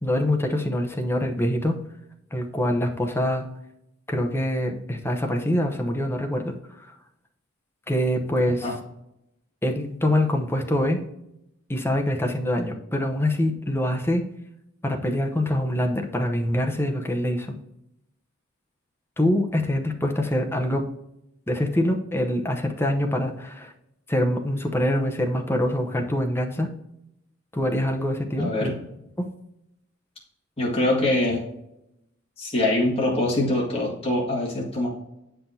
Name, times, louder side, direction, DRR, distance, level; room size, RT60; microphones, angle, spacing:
voice 1, 0.0-1.8 2.3-3.4 4.1-6.5 6.8-6.9 7.9-8.7 9.6-11.0 11.7-14.2 14.8-17.5 19.2-20.8 21.5-23.7 24.1-26.7 27.5-28.7 29.2-29.3, left 1 dB, 10° left, 3 dB, 0.8 m, -24 dB
voice 2, 28.4-28.8 30.6-31.4 32.4-34.9, left 1 dB, 30° left, -4 dB, 2.0 m, -24 dB
8.5 x 5.8 x 2.8 m, 0.84 s
head